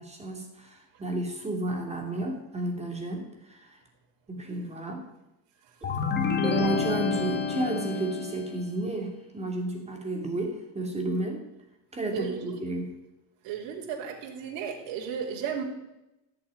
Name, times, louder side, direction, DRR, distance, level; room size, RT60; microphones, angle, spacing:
voice 1, 0.0-3.8 4.3-5.0 6.4-11.4 11.9-12.9, right 1 dB, 15° right, 1 dB, 2.9 m, -32 dB
voice 2, 5.6-6.1 12.1-12.6 13.4-15.6, right 7 dB, 85° right, -1 dB, 3.5 m, -35 dB
sound 1, 5.8-8.6, left 5 dB, 25° left, 1.7 m, -29 dB
17.0 x 6.8 x 9.8 m, 0.92 s
cardioid pair, 155°, 43 cm